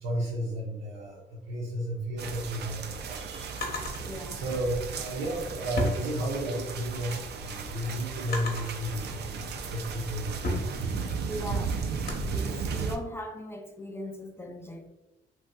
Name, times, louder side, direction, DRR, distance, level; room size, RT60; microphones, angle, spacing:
voice 1, 0.0-3.6 4.3-10.9, right 1 dB, 85° right, 0.8 m, -33 dB
sound 1, 2.2-13.0, right 5 dB, 60° right, 0.4 m, -35 dB
Drawer open or close, 2.5-4.0 5.1-6.7 7.1-8.8 9.5-12.3, left 1 dB, 50° left, 0.8 m, -36 dB
voice 2, 3.8-4.5 11.2-11.8 12.3-14.9, equal, 10° left, 0.4 m, -39 dB
3.1 x 2.6 x 2.2 m
cardioid pair, 90°, 20 cm